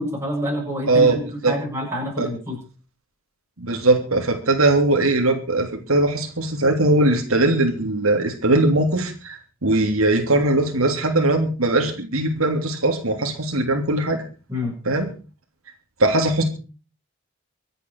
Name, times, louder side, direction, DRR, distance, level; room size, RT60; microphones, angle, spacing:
voice 1, 0.0-2.6 14.5-14.7, equal, 10° right, -2 dB, 7.7 m, -27 dB
voice 2, 0.9-1.2 1.4-1.5 2.2-2.3 3.6-14.2 14.8-15.1 16.0-16.4, right 2 dB, 80° right, 2 dB, 3.2 m, -20 dB
25.0 x 9.0 x 4.8 m, 0.36 s
head